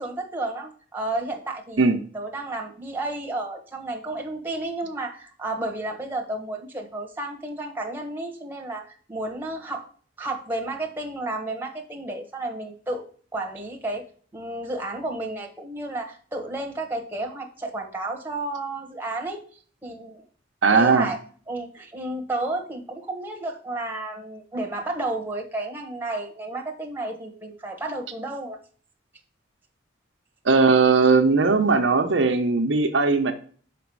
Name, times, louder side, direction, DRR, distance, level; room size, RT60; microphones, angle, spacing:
voice 1, 0.0-9.9 10.2-13.0 13.3-14.0 14.3-19.4 19.8-20.2 20.7-21.2 21.5-28.6, right 2 dB, 10° right, 1 dB, 1.3 m, -32 dB
voice 2, 20.6-21.1 30.4-33.3, right 4 dB, 80° right, 5 dB, 0.9 m, -18 dB
6.0 x 4.9 x 4.7 m, 0.43 s
head